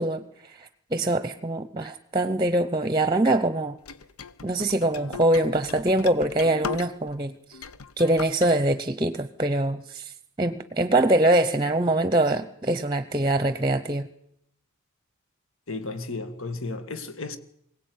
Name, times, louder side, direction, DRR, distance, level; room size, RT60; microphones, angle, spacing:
voice 1, 0.0-3.8 4.4-7.6 8.0-10.1 10.4-14.1, right 1 dB, 20° right, 0.9 m, -24 dB
sound 1, 3.8-7.2 7.5-8.5, left 6 dB, 85° left, 1.0 m, -38 dB
voice 2, 15.7-17.4, left 3 dB, 70° left, 2.1 m, -33 dB
22.5 x 17.5 x 9.5 m
head